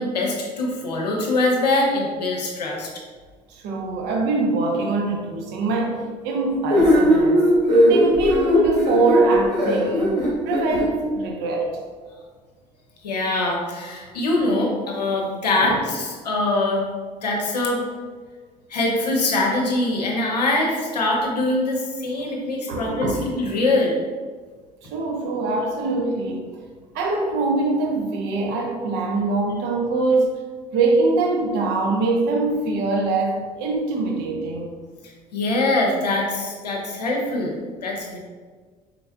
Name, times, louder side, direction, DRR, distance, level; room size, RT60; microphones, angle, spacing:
voice 1, 0.0-2.9 13.0-16.9 17.2-17.8 18.7-24.0 35.0-38.2, left 2 dB, 80° left, -1 dB, 0.7 m, -23 dB
voice 2, 3.5-7.5 7.9-10.2 10.4-11.8 15.6-15.8 22.7-23.3 24.9-26.5 26.9-30.3 30.7-34.7, right 3 dB, 55° right, 1 dB, 0.7 m, -23 dB
sound 1, 6.7-10.8, equal, 90° right, 0.8 m, -18 dB
4.3 x 3.8 x 2.2 m, 1.5 s
figure-of-eight pair, 55°, 20 cm